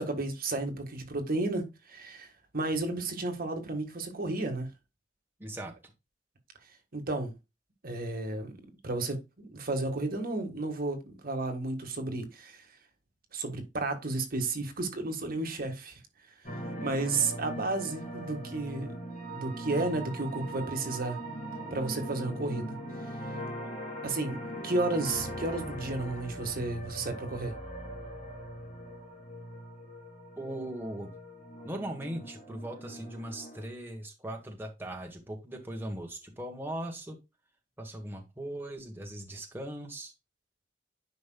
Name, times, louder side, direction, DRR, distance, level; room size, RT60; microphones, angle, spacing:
voice 1, 0.0-2.3 2.5-4.7 6.9-7.3 7.8-12.6 13.3-16.0 16.8-19.0 19.3-21.2 21.7-22.8 24.0-27.5, right 2 dB, 55° right, 1.5 m, -32 dB
voice 2, 5.4-5.9 30.4-31.1 31.6-37.2 37.8-40.1, right 1 dB, 10° right, 1.2 m, -39 dB
sound 1, 16.4-33.7, right 1 dB, 45° left, 2.9 m, -40 dB
10.0 x 5.2 x 2.2 m
head